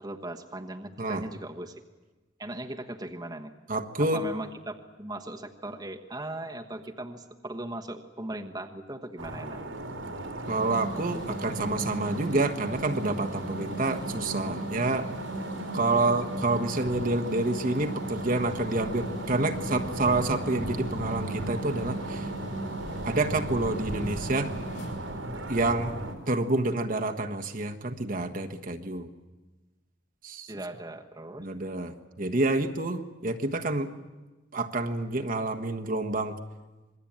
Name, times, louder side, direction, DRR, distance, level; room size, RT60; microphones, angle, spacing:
voice 1, 0.0-1.8 2.4-3.5 4.0-9.7 15.9-16.2 30.5-31.5, right 1 dB, 20° right, 3 dB, 1.3 m, -38 dB
voice 2, 3.7-4.2 10.5-15.1 15.7-22.3 23.0-24.5 25.5-25.9 26.3-29.1 30.2-30.5 31.4-33.9 34.5-36.3, right 2 dB, 45° right, 4 dB, 1.4 m, -28 dB
sound 1, 9.2-26.1, right 1 dB, 85° right, 3.5 m, -37 dB
sound 2, 10.4-25.8, right 1 dB, 70° left, 6.9 m, -38 dB
26.5 x 21.5 x 8.9 m, 1.2 s
head